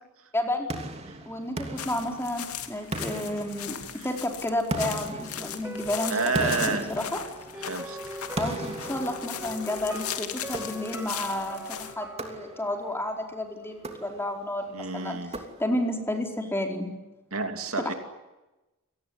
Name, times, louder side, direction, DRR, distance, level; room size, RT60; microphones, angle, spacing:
voice 1, 0.3-0.7 1.3-3.8 4.0-7.2 8.4-15.2 15.6-16.9 17.8-17.9, left 1 dB, 10° left, 3 dB, 4.6 m, -31 dB
sound 1, 0.7-2.5 2.9-4.1 4.7-7.7 8.4-9.8 10.5-11.2 12.2-12.9 13.7-14.5 15.3-16.0, right 1 dB, 30° right, 3.0 m, -37 dB
sound 2, 1.8-11.9, left 8 dB, 80° left, 2.6 m, -38 dB
sound 3, 4.9-13.8 14.2-14.3, right 1 dB, 10° right, 2.3 m, -42 dB
voice 2, 6.1-6.9 7.7-8.2 14.7-15.4 17.3-17.9, right 4 dB, 70° right, 6 dB, 2.9 m, -29 dB
28.5 x 19.5 x 9.8 m, 1.0 s
head